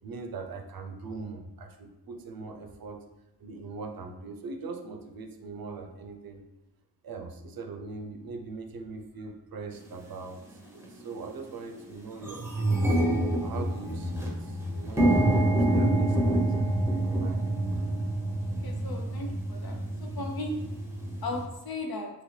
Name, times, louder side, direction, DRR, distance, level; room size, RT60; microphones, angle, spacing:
voice 1, 0.0-3.0 3.4-6.4 7.0-13.0 13.4-16.5 17.0-17.4, right 4 dB, 60° right, 5 dB, 0.6 m, -41 dB
sound 1, 9.9-10.0 10.7-11.0 11.4-11.5 11.7-21.4, right 1 dB, 5° right, 0.8 m, -27 dB
voice 2, 18.6-19.8 20.2-20.5 21.2-22.1, left 2 dB, 60° left, 2 dB, 0.7 m, -36 dB
2.9 x 2.7 x 3.1 m, 0.92 s
cardioid pair, 55°, 41 cm